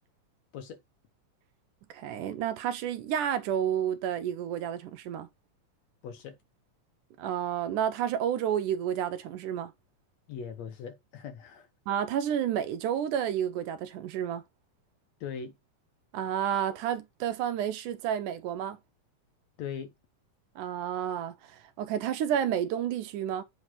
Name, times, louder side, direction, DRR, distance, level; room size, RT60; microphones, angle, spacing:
voice 1, 1.9-5.3 7.2-9.7 11.9-14.4 16.1-18.8 20.6-23.4, right 9 dB, 80° right, 2.4 m, -30 dB
voice 2, 6.0-6.4 10.3-11.7 15.2-15.6 19.6-19.9, left 7 dB, 65° left, 2.0 m, -40 dB
8.1 x 2.9 x 5.6 m
omnidirectional pair, 3.6 m